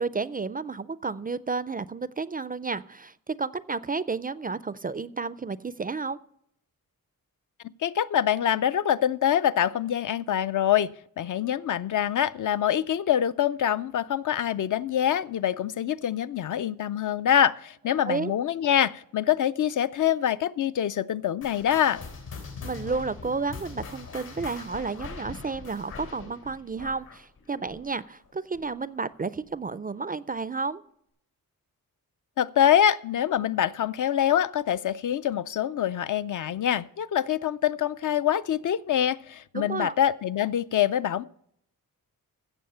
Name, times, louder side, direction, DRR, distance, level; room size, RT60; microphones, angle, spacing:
voice 1, 0.0-6.2 18.0-18.3 22.6-30.8 39.5-39.9, right 4 dB, 25° right, 0.3 m, -31 dB
voice 2, 7.8-22.0 32.4-41.2, left 10 dB, 60° left, 0.4 m, -25 dB
sound 1, 21.4-28.3 28.5-28.9 29.4-29.5 30.3-30.4, left 5 dB, 80° left, 3.8 m, -41 dB
15.5 x 7.0 x 5.5 m
wide cardioid pair, 125°, 35 cm